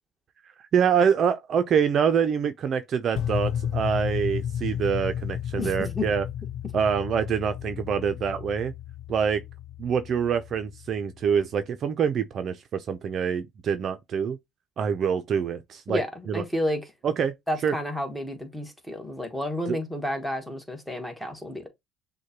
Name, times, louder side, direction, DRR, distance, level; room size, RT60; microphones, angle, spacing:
voice 1, 0.7-6.2 6.7-8.7 9.1-9.4 9.8-14.4 14.8-16.0 16.3-16.4 17.0-17.3 17.6-17.7 19.7-19.8, right 7 dB, 45° right, 0.5 m, -25 dB
sound 1, 3.2-11.3, left 9 dB, 55° left, 0.6 m, -33 dB
voice 2, 5.6-6.1 15.9-16.8 17.5-21.7, left 1 dB, 5° left, 1.2 m, -31 dB
6.3 x 2.2 x 2.9 m
supercardioid pair, 105°, 0 cm